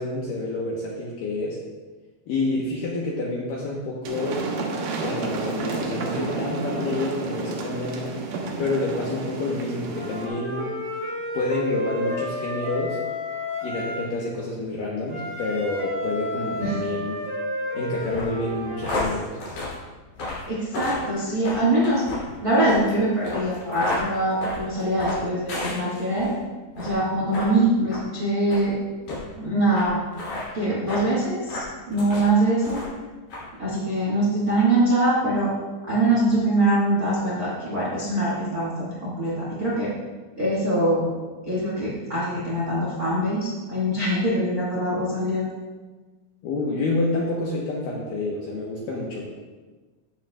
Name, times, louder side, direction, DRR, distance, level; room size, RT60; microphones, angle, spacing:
voice 1, 0.0-1.6 2.3-4.5 5.0-8.2 8.6-10.8 11.3-13.0 13.6-17.2 17.7-19.4 46.4-49.2, left 2 dB, 75° left, -4 dB, 2.1 m, -28 dB
sound 1, 4.0-10.3, right 3 dB, 85° right, 1.8 m, -31 dB
Wind instrument woodwind instrument, 9.9-14.1 15.1-19.0, equal, 45° right, 3.7 m, -31 dB
sound 2, 18.1-26.3 26.7-27.0 27.3-27.5 27.9-28.0 28.5-28.7 29.1-29.2 29.8-29.9 30.1-30.5 30.9-31.1 31.5-32.3 32.6-33.0 33.3-33.4, left 2 dB, 50° left, 4.2 m, -32 dB
voice 2, 20.4-22.0 22.4-26.3 26.7-28.8 29.3-30.0 30.5-32.8 33.6-35.5 35.9-39.9 40.4-41.1 41.4-45.5, right 1 dB, 65° right, -6 dB, 0.8 m, -23 dB
13.0 x 9.0 x 2.3 m, 1.3 s
omnidirectional pair, 5.3 m